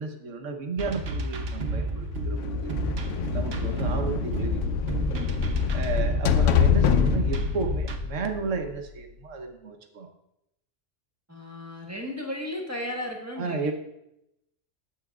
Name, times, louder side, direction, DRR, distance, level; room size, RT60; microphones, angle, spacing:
voice 1, 0.0-2.8 3.3-5.1 5.7-10.1 13.4-13.7, right 4 dB, 90° right, 4 dB, 1.3 m, -33 dB
sound 1, 0.8-8.0, right 2 dB, 60° right, 1.0 m, -31 dB
sound 2, 2.1-8.9, left 7 dB, 85° left, 1.0 m, -26 dB
voice 2, 11.3-13.7, left 1 dB, 15° right, 0 dB, 1.3 m, -35 dB
13.0 x 7.7 x 2.4 m, 0.85 s
omnidirectional pair, 1.2 m